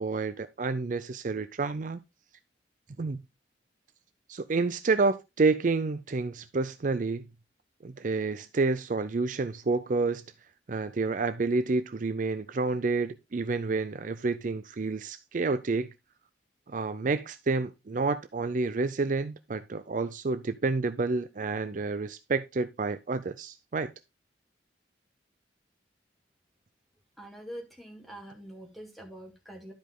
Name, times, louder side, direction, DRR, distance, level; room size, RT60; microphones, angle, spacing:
voice 1, 0.0-2.0 3.0-3.2 4.3-7.2 7.8-10.2 10.7-15.9 16.7-23.9, right 3 dB, 45° right, 0.5 m, -29 dB
voice 2, 27.2-29.7, equal, ahead, 2.2 m, -44 dB
12.0 x 5.1 x 3.8 m
head